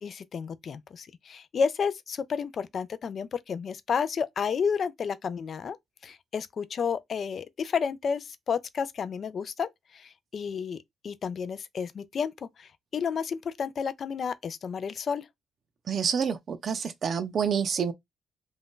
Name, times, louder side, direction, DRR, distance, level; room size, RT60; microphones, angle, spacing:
voice 1, 0.0-5.8 6.0-10.8 11.0-15.3, left 6 dB, 50° left, 0.3 m, -31 dB
voice 2, 15.9-17.9, right 7 dB, 50° right, 0.5 m, -28 dB
2.6 x 2.3 x 3.6 m
cardioid pair, 90°, 0 cm